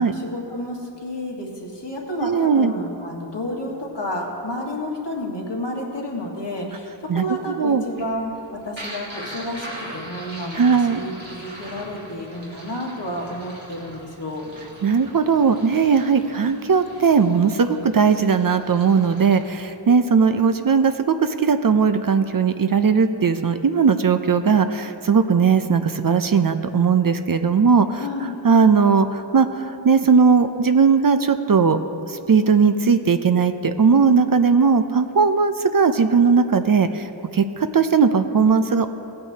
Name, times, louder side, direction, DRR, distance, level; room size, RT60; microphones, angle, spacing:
voice 1, 0.0-8.3 8.6-14.5 27.9-28.3 34.1-34.3, left 1 dB, 60° left, -2 dB, 1.7 m, -31 dB
voice 2, 2.2-2.7 7.1-7.2 7.6-7.8 10.5-11.0 14.8-28.0 28.4-31.8 32.1-37.1 37.3-38.9, right 5 dB, 50° right, 9 dB, 0.5 m, -18 dB
sound 1, 7.8-19.6, right 1 dB, 85° right, 2.3 m, -40 dB
16.0 x 8.7 x 2.8 m, 2.9 s
wide cardioid pair, 45°, 45 cm